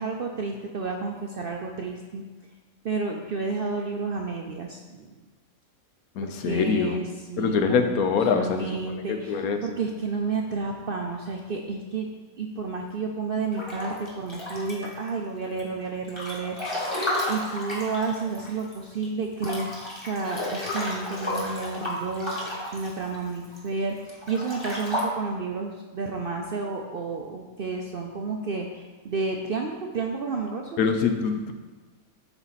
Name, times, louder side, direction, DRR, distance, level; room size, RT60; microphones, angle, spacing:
voice 1, 0.0-2.2 2.8-5.1 6.2-12.1 12.4-17.0 17.3-30.8, right 4 dB, 60° right, 2 dB, 0.6 m, -31 dB
voice 2, 6.2-7.0 7.4-9.6 30.8-31.5, left 5 dB, 80° left, 6 dB, 1.2 m, -24 dB
Breathing / Bathtub (filling or washing) / Splash splatter, 13.5-15.1 15.6-18.8 19.0-19.1 19.4-23.6 24.1-25.0, left 1 dB, 20° left, 1.6 m, -32 dB
10.5 x 4.5 x 4.0 m, 1.3 s
omnidirectional pair, 1.5 m